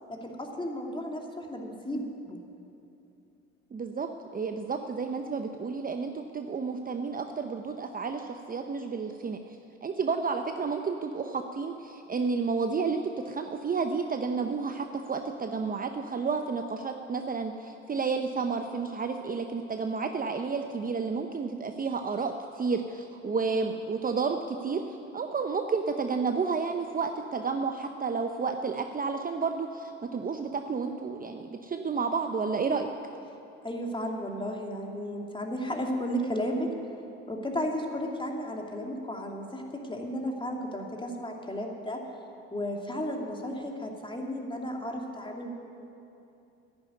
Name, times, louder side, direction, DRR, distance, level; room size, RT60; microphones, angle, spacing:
voice 1, 0.1-2.4 33.6-36.7 37.3-42.0 42.5-45.5, equal, 15° left, 1 dB, 2.6 m, -34 dB
voice 2, 3.7-9.4 9.8-32.9, right 5 dB, 25° right, 6 dB, 0.8 m, -31 dB
11.0 x 10.5 x 9.5 m, 2.8 s
hypercardioid pair, 60°, 34 cm